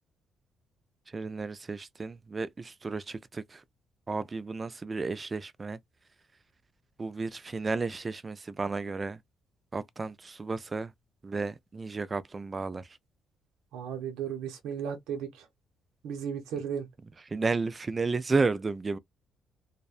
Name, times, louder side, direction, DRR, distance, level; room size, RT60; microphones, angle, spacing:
voice 1, 1.1-3.6 4.1-5.8 7.0-9.2 9.7-10.9 11.2-13.0 17.3-19.0, right 4 dB, 30° right, 0.3 m, -32 dB
voice 2, 13.7-15.5 16.0-16.9, right 8 dB, 85° right, 0.6 m, -35 dB
2.5 x 2.1 x 2.4 m
cardioid pair, 90°, 0 cm